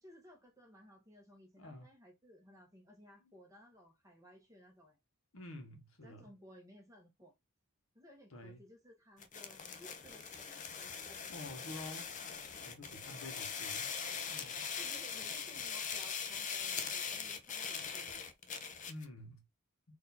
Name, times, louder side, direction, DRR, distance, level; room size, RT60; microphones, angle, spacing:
voice 1, 0.0-5.0 6.0-7.3 7.9-11.2 13.1-13.3 14.8-18.3, left 1 dB, 15° right, 1.2 m, -59 dB
voice 2, 5.3-6.3 8.3-8.6 11.3-12.1 12.6-13.9 14.3-14.7 18.9-19.4, left 1 dB, 70° left, 1.1 m, -49 dB
sound 1, 9.2-19.1, left 6 dB, 35° left, 0.5 m, -41 dB
4.1 x 2.7 x 4.1 m
head